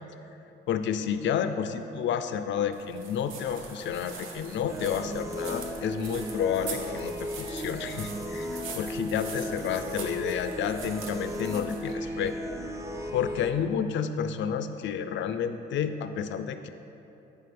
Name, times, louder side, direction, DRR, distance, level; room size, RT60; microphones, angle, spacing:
voice 1, 0.7-12.4 13.1-16.7, left 8 dB, 70° left, 10 dB, 0.4 m, -30 dB
sound 1, 2.7-12.6, right 4 dB, 85° right, 0.8 m, -43 dB
sound 2, 4.7-13.5, equal, 15° right, 0.5 m, -36 dB
9.5 x 4.8 x 3.4 m, 3.0 s
cardioid pair, 90°, 20 cm